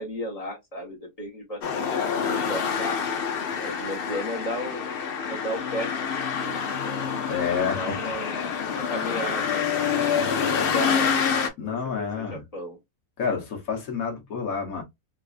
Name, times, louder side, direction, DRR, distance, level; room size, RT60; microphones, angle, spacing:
voice 1, 0.0-3.0 3.6-4.8 5.3-7.2 7.7-8.4 8.7-9.7 10.5-11.2 11.6-12.8, equal, 25° left, 1.1 m, -34 dB
sound 1, 1.6-11.5, left 7 dB, 85° left, 0.5 m, -27 dB
voice 2, 7.3-7.8 11.6-12.4 13.2-14.8, left 6 dB, 65° left, 1.3 m, -28 dB
4.0 x 2.4 x 2.4 m
omnidirectional pair, 1.7 m